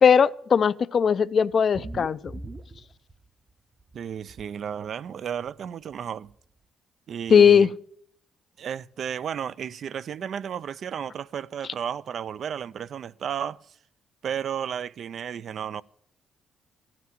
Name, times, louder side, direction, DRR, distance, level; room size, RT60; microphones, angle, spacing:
voice 1, 0.0-2.3 7.3-7.7, left 7 dB, 50° left, 0.4 m, -18 dB
sound 1, 1.5-3.5 3.8-4.5 5.5-5.6 5.9-6.0 6.3-6.4, right 2 dB, 30° right, 0.7 m, -40 dB
voice 2, 3.9-6.3 7.1-7.7 8.6-13.6 14.2-15.8, right 8 dB, 60° right, 0.4 m, -33 dB
15.0 x 5.9 x 9.2 m
cardioid pair, 90°, 0 cm